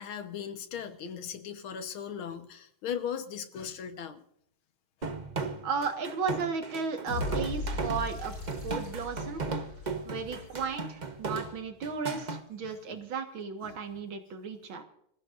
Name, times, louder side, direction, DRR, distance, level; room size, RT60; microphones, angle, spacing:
voice 1, 0.0-4.2 12.6-12.7 13.6-13.8, left 8 dB, 80° left, 8 dB, 2.0 m, -38 dB
sound 1, 5.0-12.4, right 4 dB, 30° right, 0.9 m, -36 dB
voice 2, 5.6-8.3 8.6-9.4 10.1-14.8, right 5 dB, 70° right, 6 dB, 2.4 m, -34 dB
sound 2, 7.1-11.2, left 3 dB, 45° left, 6.6 m, -38 dB
26.0 x 15.5 x 2.6 m, 0.72 s
omnidirectional pair, 2.3 m